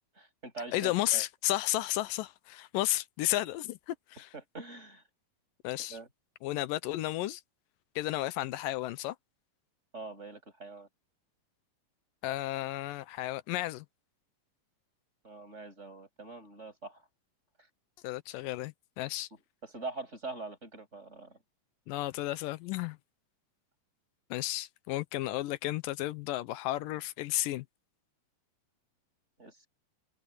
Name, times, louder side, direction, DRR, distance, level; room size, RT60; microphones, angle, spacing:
voice 1, 0.1-1.2 4.3-5.0 5.8-6.1 9.9-10.9 15.2-17.0 19.3-21.4 29.4-29.7, right 3 dB, 20° right, 6.9 m, -44 dB
voice 2, 0.7-4.3 5.6-6.0 6.4-7.4 8.0-9.2 12.2-13.9 18.0-19.3 21.9-23.0 24.3-27.7, left 16 dB, 85° left, 2.4 m, -33 dB
open air
omnidirectional pair, 3.9 m